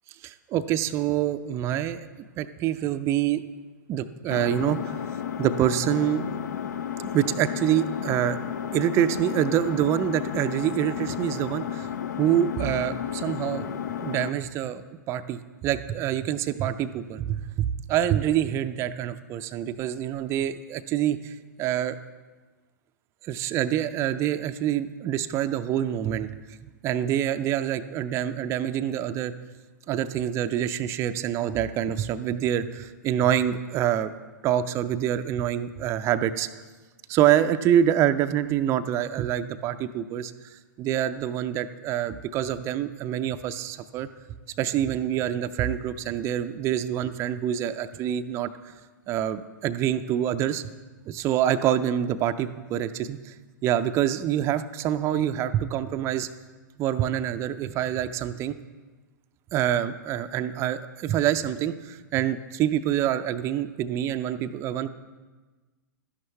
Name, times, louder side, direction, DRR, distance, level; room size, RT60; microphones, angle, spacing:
voice 1, 0.2-2.1 2.4-3.4 3.9-5.0 5.4-6.2 7.0-8.4 8.7-11.9 12.2-14.8 15.1-22.0 23.2-26.4 26.8-29.3 29.9-34.1 34.4-36.6 37.1-44.1 44.6-48.7 49.1-50.7 51.1-53.3 53.6-56.3 56.8-58.6 59.5-64.9, right 11 dB, 25° right, 10 dB, 0.5 m, -26 dB
Engine, 4.3-14.3, left 9 dB, 60° left, 0.6 m, -33 dB
12.5 x 10.5 x 3.3 m, 1.3 s
figure-of-eight pair, 105°, 10 cm